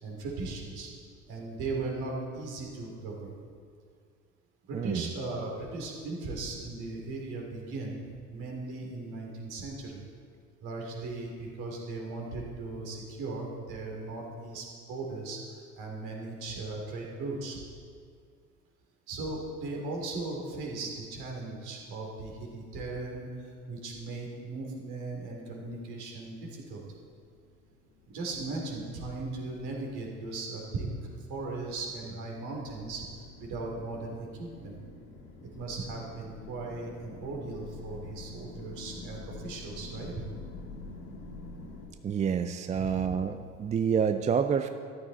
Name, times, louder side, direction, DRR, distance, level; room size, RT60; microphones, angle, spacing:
voice 1, 0.0-0.9 1.3-3.3 4.7-10.0 10.6-15.4 15.8-17.6 19.1-26.8 28.1-33.0 33.4-34.8 35.5-40.1 42.7-43.0, right 3 dB, 55° right, -1 dB, 3.4 m, -38 dB
voice 2, 4.7-5.1 42.0-44.7, right 7 dB, 15° right, 8 dB, 0.4 m, -28 dB
sound 1, 26.6-41.9, left 3 dB, 65° left, 2.2 m, -47 dB
14.0 x 11.5 x 4.2 m, 2.2 s
figure-of-eight pair, 65°, 45 cm